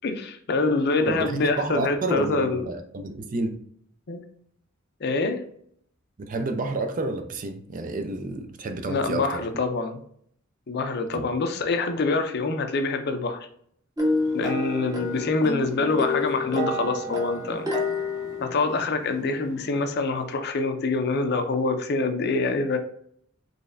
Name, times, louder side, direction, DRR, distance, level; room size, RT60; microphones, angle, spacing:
voice 1, 0.0-2.7 4.1-4.2 5.0-5.4 8.9-10.0 10.7-13.5 14.3-17.7 18.4-22.8, left 3 dB, 55° left, 6 dB, 0.5 m, -25 dB
voice 2, 1.1-3.5 6.2-9.4 11.1-11.3, right 2 dB, 40° right, 6 dB, 0.4 m, -30 dB
sound 1, 14.0-19.4, left 2 dB, 20° right, 0.8 m, -29 dB
4.0 x 3.2 x 2.5 m, 0.65 s
head